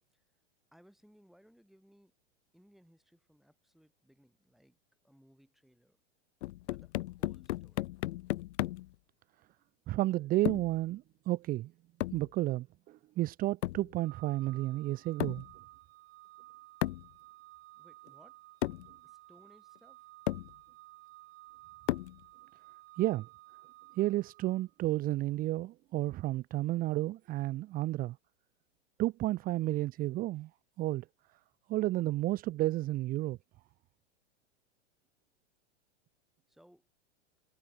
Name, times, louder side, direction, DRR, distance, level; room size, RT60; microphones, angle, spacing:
voice 1, 0.7-2.1 2.5-4.8 5.0-6.0 6.6-7.9 17.7-18.4 19.0-20.1 36.5-36.9, equal, ahead, 7.2 m, -64 dB
sound 1, 6.4-9.0 10.5-10.8 12.0-12.3 13.6-13.9 15.2-15.5 16.8-17.1 18.1-18.2 18.6-18.9 19.8-19.9 20.3-20.5 21.9-22.2, left 17 dB, 75° left, 0.5 m, -35 dB
voice 2, 9.9-11.7 12.1-15.5 23.0-23.3 24.0-28.2 29.0-30.5 30.8-31.1 31.7-33.4, right 16 dB, 25° right, 0.5 m, -32 dB
Organ, 14.0-24.8, right 18 dB, 65° right, 3.2 m, -55 dB
hypercardioid pair, 115°, 34 cm